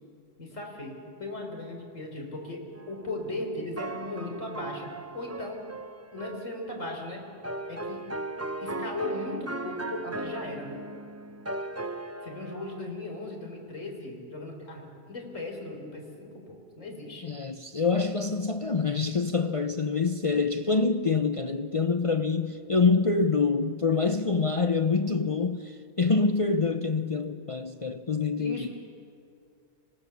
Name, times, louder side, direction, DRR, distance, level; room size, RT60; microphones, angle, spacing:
voice 1, 0.4-5.7 6.1-7.2 7.7-8.0 8.6-10.9 12.2-17.3 28.4-28.7, left 2 dB, 65° left, 4.2 m, -37 dB
sound 1, 2.7-12.8, right 2 dB, 15° right, 0.5 m, -38 dB
voice 2, 17.2-28.7, left 4 dB, 40° left, 0.5 m, -26 dB
27.0 x 18.0 x 6.9 m
omnidirectional pair, 1.4 m